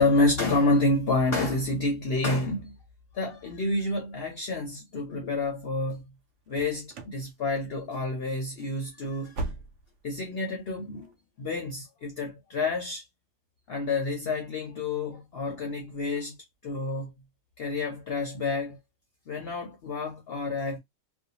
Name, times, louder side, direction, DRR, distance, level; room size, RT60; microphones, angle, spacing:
voice 1, 0.0-2.7 3.1-6.0 6.5-9.4 10.0-11.1 11.4-13.0 13.7-16.4 16.6-17.1 17.6-18.8 19.3-20.8, left 2 dB, 60° left, 0.7 m, -28 dB
sound 1, 6.5-7.2 7.5-8.0 8.3-8.4 8.8-10.1 10.4-10.5 11.0-11.1, right 2 dB, 65° right, 0.8 m, -38 dB
2.5 x 2.1 x 2.8 m
omnidirectional pair, 1.4 m